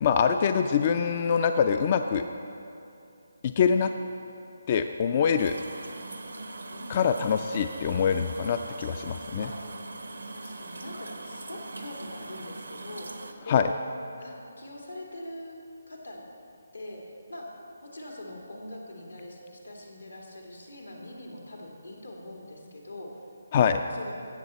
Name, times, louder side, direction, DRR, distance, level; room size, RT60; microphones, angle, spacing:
voice 1, 0.0-2.2 3.4-3.9 4.7-5.5 6.9-9.5 13.5-13.6 23.5-23.8, left 7 dB, 35° left, 8 dB, 0.3 m, -24 dB
sound 1, 5.4-13.3, right 2 dB, 75° right, 0.8 m, -41 dB
voice 2, 6.7-7.4 9.4-9.6 10.3-13.7 14.2-15.6 15.9-16.2 16.7-17.0 17.3-17.5 17.8-23.2 23.9-24.1, left 1 dB, 90° left, -1 dB, 2.2 m, -42 dB
16.0 x 6.9 x 4.2 m, 2.7 s
figure-of-eight pair, 150°, 0 cm